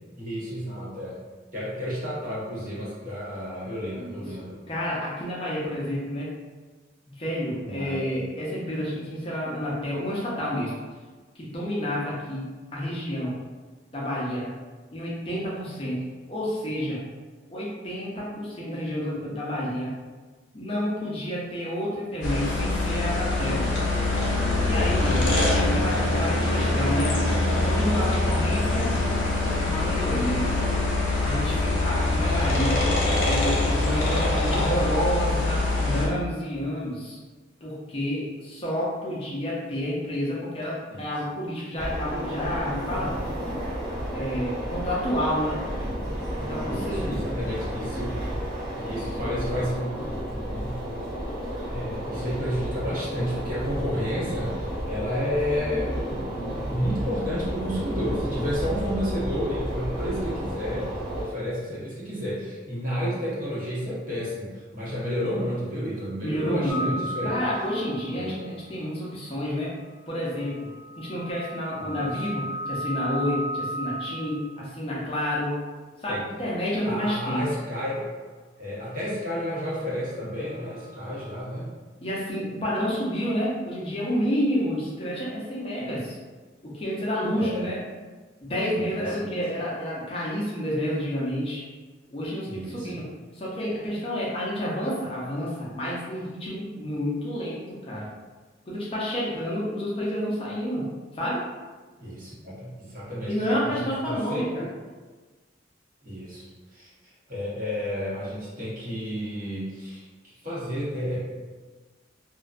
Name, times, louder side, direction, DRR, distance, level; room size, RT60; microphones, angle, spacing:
voice 1, 0.1-1.2 1.5-4.6 7.6-8.0 34.0-35.0 40.9-41.1 46.6-48.2 48.7-50.8 51.6-67.4 68.1-68.4 71.8-72.3 76.1-76.3 76.8-78.1 78.6-81.7 87.4-87.7 88.8-89.3 92.5-93.0 102.0-103.3 103.6-104.7 106.0-106.5 106.7-106.9 107.3-110.0 110.4-111.2, equal, 45° right, -8 dB, 0.9 m, -31 dB
voice 2, 4.7-6.3 7.2-10.7 11.4-13.4 13.9-14.5 14.9-16.0 16.3-17.0 17.5-19.9 20.5-23.7 24.6-27.2 27.6-28.9 29.5-30.5 31.2-37.2 37.6-43.2 44.1-45.7 46.5-47.2 66.2-69.7 70.1-70.7 71.0-75.5 76.0-77.5 82.0-86.2 86.6-87.8 88.4-91.6 92.1-93.1 93.3-98.1 98.7-100.9 101.1-101.4 103.3-104.6, equal, 30° left, -6 dB, 0.5 m, -29 dB
sound 1, 22.2-36.1, left 2 dB, 85° left, 0.6 m, -24 dB
sound 2, 41.8-61.2, equal, ahead, 0.8 m, -32 dB
sound 3, 66.7-68.3 70.3-74.7 80.6-81.4, right 1 dB, 75° right, 0.4 m, -35 dB
2.5 x 2.1 x 2.4 m, 1.3 s
head